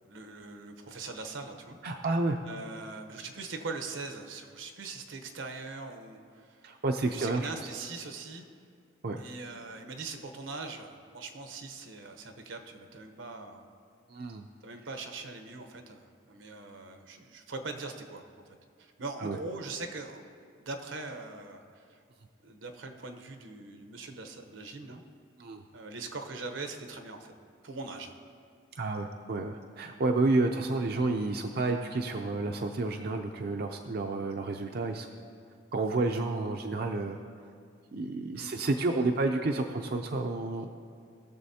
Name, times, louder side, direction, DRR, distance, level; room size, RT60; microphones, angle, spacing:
voice 1, 0.0-1.8 2.5-6.7 7.0-8.4 9.2-13.6 14.6-18.3 18.8-20.2 20.6-22.0 22.4-25.0 25.7-27.3 27.6-28.2 38.3-38.6, right 3 dB, 85° right, 6 dB, 0.9 m, -41 dB
voice 2, 1.8-2.4 6.6-7.5 9.0-9.2 14.1-14.4 19.2-19.4 25.4-25.6 28.8-35.1 35.7-37.2 37.9-40.7, right 2 dB, 50° right, 3 dB, 0.5 m, -30 dB
20.0 x 7.0 x 2.8 m, 2.2 s
head